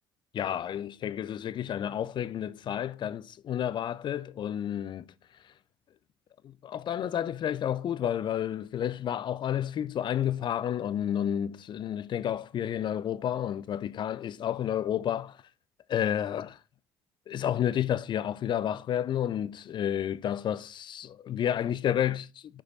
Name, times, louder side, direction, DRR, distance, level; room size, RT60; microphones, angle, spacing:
voice 1, 0.3-5.1 6.4-15.4 15.9-16.6 17.3-22.6, left 10 dB, 40° left, 0.5 m, -31 dB
6.3 x 4.8 x 4.1 m
hypercardioid pair, 55°, 12 cm